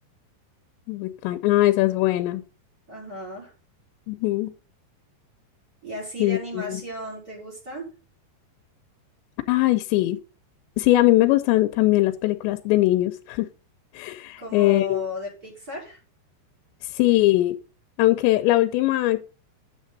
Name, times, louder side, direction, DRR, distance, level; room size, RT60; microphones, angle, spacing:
voice 1, 0.9-2.4 4.1-4.5 6.2-6.8 9.5-10.2 10.8-13.5 13.9-15.1 16.8-17.6 18.0-19.2, left 17 dB, 85° left, 2.9 m, -21 dB
voice 2, 2.9-3.5 5.8-7.9 14.4-16.0, left 1 dB, 20° right, 4.7 m, -35 dB
9.2 x 7.4 x 3.9 m
omnidirectional pair, 5.1 m